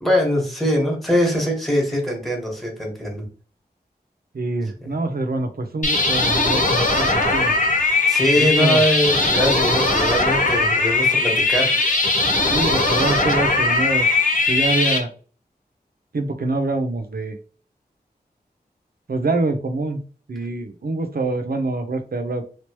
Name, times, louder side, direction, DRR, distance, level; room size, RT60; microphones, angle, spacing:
voice 1, 0.0-3.3 4.8-4.9 8.1-11.7, equal, ahead, -1 dB, 1.5 m, -22 dB
voice 2, 4.3-7.5 8.4-8.8 12.5-14.1 14.5-15.1 16.1-17.4 19.1-20.0 20.3-22.4, right 2 dB, 65° right, 7 dB, 0.6 m, -25 dB
sound 1, 5.8-15.0, left 2 dB, 50° left, 1.0 m, -19 dB
3.1 x 2.9 x 3.0 m, 0.40 s
cardioid pair, 40°, 17 cm